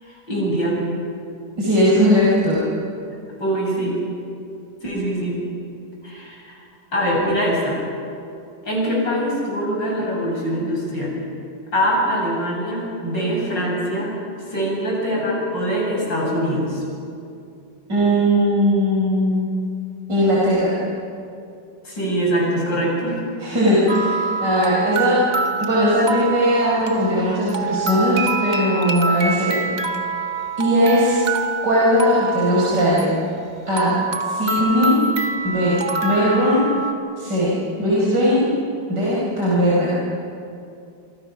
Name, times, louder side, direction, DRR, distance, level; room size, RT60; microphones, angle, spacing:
voice 1, 0.0-0.8 3.4-3.9 4.8-5.3 6.0-6.6 6.9-7.8 8.6-11.1 11.7-14.1 14.5-16.8 21.8-23.2, equal, 80° left, -3 dB, 8.5 m, -23 dB
voice 2, 1.6-2.6 17.9-19.5 20.1-20.7 23.4-25.2 25.6-29.6 30.6-31.2 31.6-33.1 33.7-34.0 34.2-35.0 35.4-36.6 37.2-37.5 37.8-38.5 38.9-39.9, equal, 70° right, -6 dB, 5.7 m, -19 dB
sound 1, 23.9-36.9, right 4 dB, 25° right, 1.3 m, -26 dB
27.5 x 25.5 x 6.1 m, 2.5 s
omnidirectional pair, 1.9 m